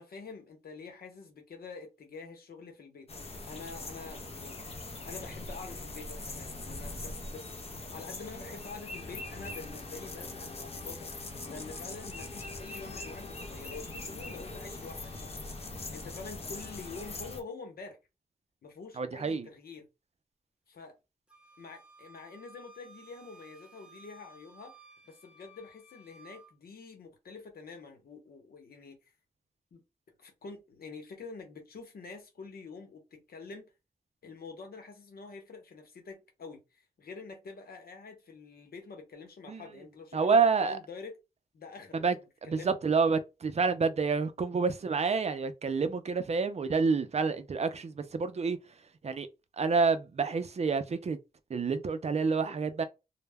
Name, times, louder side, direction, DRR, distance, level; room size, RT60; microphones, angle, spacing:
voice 1, 0.0-4.6 5.0-7.6 7.9-18.0 18.6-19.9 20.7-21.0 21.6-24.8 25.1-29.1 29.7-29.8 30.2-33.7 34.2-41.1 41.5-42.0 42.4-42.8, left 4 dB, 90° left, 0.7 m, -47 dB
sound 1, 3.1-17.4, left 2 dB, 40° left, 0.5 m, -42 dB
voice 2, 19.0-19.5 39.5-39.6 40.1-40.8 41.9-42.2 42.4-48.6 49.0-49.3 49.6-51.2 51.5-52.8, right 5 dB, 45° right, 0.4 m, -28 dB
Wind instrument woodwind instrument, 21.3-26.5, right 2 dB, 5° right, 0.7 m, -56 dB
2.1 x 2.1 x 3.3 m
wide cardioid pair, 95°, 15 cm